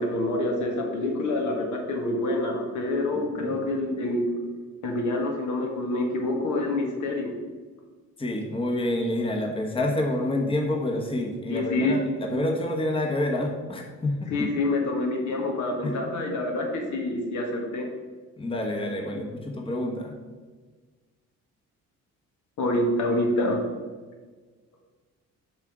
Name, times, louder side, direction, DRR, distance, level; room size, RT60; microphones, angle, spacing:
voice 1, 0.0-4.3 4.8-7.3 11.5-12.0 14.3-17.9 22.6-23.6, left 2 dB, 70° left, 1 dB, 1.5 m, -27 dB
voice 2, 8.2-14.3 15.8-16.0 18.4-20.1, left 1 dB, 20° left, 1 dB, 1.0 m, -28 dB
5.8 x 3.6 x 5.9 m, 1.4 s
cardioid pair, 90°, 30 cm